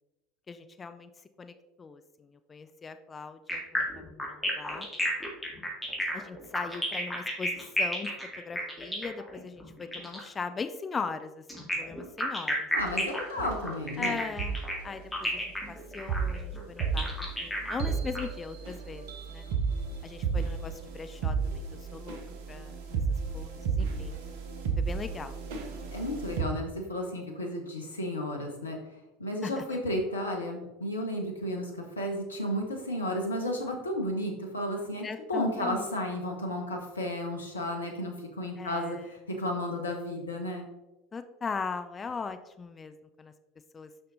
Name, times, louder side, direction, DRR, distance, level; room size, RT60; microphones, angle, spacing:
voice 1, 0.5-1.1 1.4-4.9 6.1-12.7 14.0-19.5 20.0-21.6 21.9-22.2 22.5-22.7 23.3-24.2 24.8-25.4 29.4-29.6 35.0-35.9 38.6-39.2 41.1-43.3 43.7-43.9, left 5 dB, 25° left, 9 dB, 0.5 m, -39 dB
sound 1, 3.5-10.3 11.5-18.2, left 1 dB, 10° left, 2.3 m, -32 dB
voice 2, 12.7-14.2 25.9-28.8 29.2-40.7, left 1 dB, 85° left, 1 dB, 0.9 m, -33 dB
sound 2, 12.8-13.1 13.4-13.6 14.4-14.6 15.2-26.4, right 5 dB, 65° right, 1.2 m, -33 dB
6.3 x 5.9 x 3.9 m, 1.0 s
figure-of-eight pair, 75°, 0 cm